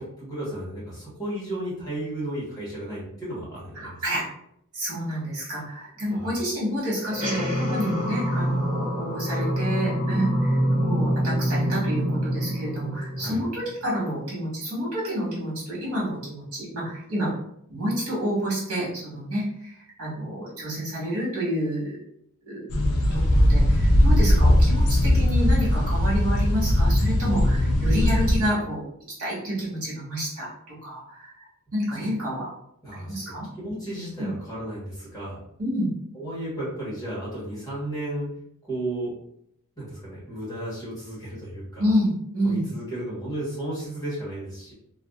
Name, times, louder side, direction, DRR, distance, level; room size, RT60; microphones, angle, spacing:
voice 1, 0.0-4.0 5.9-6.3 13.1-13.4 31.9-32.1 32.8-35.4 36.1-38.3 38.6-39.1 39.8-41.9 42.4-44.7, right 1 dB, 15° left, -8 dB, 1.1 m, -34 dB
voice 2, 3.7-4.2 4.7-17.3 17.7-22.0 22.5-22.7 23.1-28.8 29.2-30.5 30.8-32.5 33.0-33.5 34.2-34.3 35.6-35.9 41.8-42.6, equal, 75° right, -6 dB, 1.3 m, -29 dB
sound 1, 7.0-13.8, equal, 35° right, 1.0 m, -26 dB
sound 2, 22.7-28.4, left 1 dB, 75° left, 0.5 m, -19 dB
2.5 x 2.4 x 2.3 m, 0.73 s
head